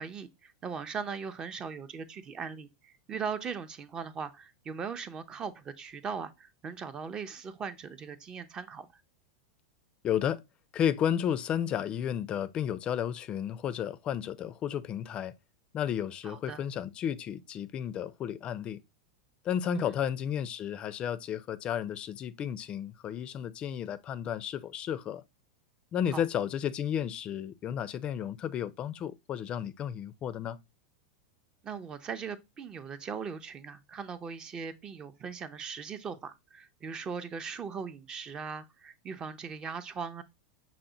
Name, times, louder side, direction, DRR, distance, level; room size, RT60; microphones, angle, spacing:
voice 1, 0.0-8.9 16.2-16.6 19.7-19.9 26.1-26.2 31.6-40.2, right 6 dB, 25° right, 0.5 m, -39 dB
voice 2, 10.0-10.4 10.7-15.3 15.7-18.8 19.4-25.2 25.9-30.6, left 9 dB, 35° left, 0.4 m, -32 dB
5.8 x 2.1 x 3.8 m
hypercardioid pair, 110°, 3 cm